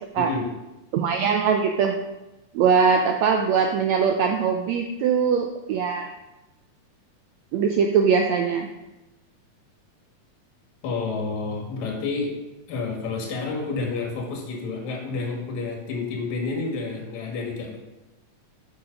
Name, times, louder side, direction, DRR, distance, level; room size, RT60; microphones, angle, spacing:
voice 1, 0.2-0.5 10.8-12.3 12.7-17.8, left 4 dB, 65° left, 0 dB, 2.9 m, -29 dB
voice 2, 0.9-1.9 2.5-6.1 7.5-8.7, right 6 dB, 85° right, 3 dB, 1.6 m, -21 dB
7.4 x 6.3 x 5.1 m, 1.0 s
omnidirectional pair, 3.8 m